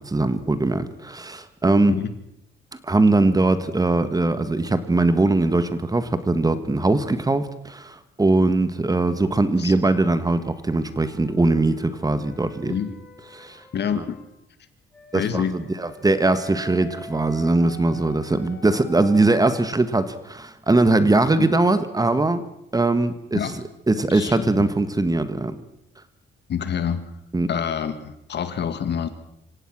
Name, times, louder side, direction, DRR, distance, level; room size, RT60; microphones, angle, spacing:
voice 1, 0.1-2.0 2.8-12.8 13.3-13.6 13.9-14.0 15.1-22.4 22.7-23.6 23.9-25.6 27.3-27.5, right 2 dB, 20° right, 12 dB, 1.7 m, -21 dB
sound 1, 9.7-14.3 14.9-19.7, left 3 dB, 5° left, 6.8 m, -46 dB
voice 2, 12.6-13.0 13.7-14.2 15.1-15.6 21.4-21.5 23.3-23.6 24.1-24.7 26.5-27.0 27.5-29.1, left 7 dB, 60° left, 11 dB, 2.0 m, -27 dB
26.5 x 17.0 x 6.2 m, 0.78 s
cardioid pair, 90°, 20 cm